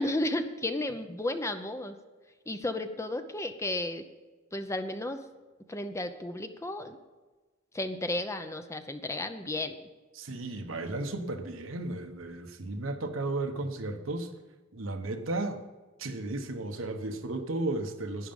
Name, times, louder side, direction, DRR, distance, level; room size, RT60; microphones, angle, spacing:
voice 1, 0.0-2.0 2.5-4.0 4.5-5.2 5.7-7.0 7.7-9.7, left 1 dB, 15° left, 8 dB, 0.7 m, -33 dB
voice 2, 10.1-14.3 14.7-15.6 16.0-18.3, right 2 dB, 75° right, 5 dB, 1.2 m, -34 dB
11.0 x 10.0 x 5.4 m, 1.3 s
head